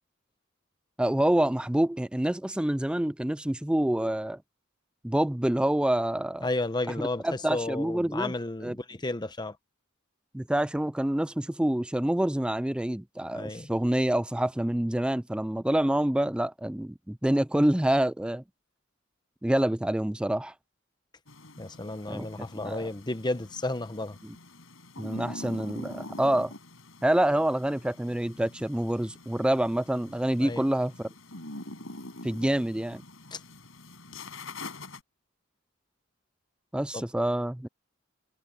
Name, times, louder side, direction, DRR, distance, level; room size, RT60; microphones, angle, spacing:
voice 1, 1.0-4.4 5.0-6.5 7.0-8.3 8.6-8.8 10.3-18.4 19.4-20.5 22.1-22.3 22.5-22.9 24.2-24.4 25.0-26.5 27.0-31.1 32.2-33.0 36.7-37.7, right 1 dB, 5° right, 0.3 m, -27 dB
voice 2, 6.4-9.6 13.3-13.7 21.6-24.2 30.4-30.6 33.3-33.4 36.9-37.0, left 2 dB, 20° left, 1.0 m, -32 dB
sound 1, 21.3-35.0, left 2 dB, 75° left, 7.1 m, -45 dB
head